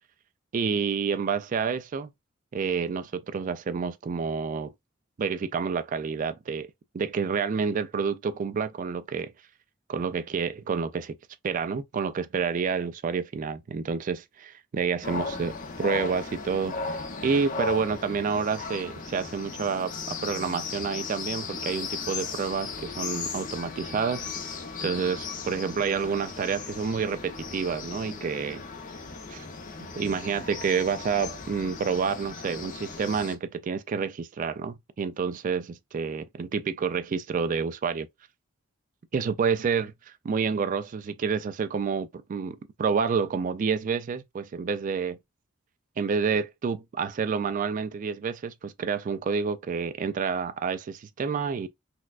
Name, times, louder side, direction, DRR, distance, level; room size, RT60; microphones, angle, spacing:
voice 1, 0.5-2.1 2.5-4.7 5.2-6.7 6.9-9.3 9.9-11.2 11.4-15.5 15.8-24.5 24.8-28.6 29.3-29.5 29.9-38.1 39.1-39.9 40.2-45.2 46.0-51.7, right 5 dB, 40° right, 0.3 m, -29 dB
sound 1, 15.0-33.4, left 4 dB, 40° left, 0.6 m, -36 dB
4.1 x 2.3 x 2.3 m
head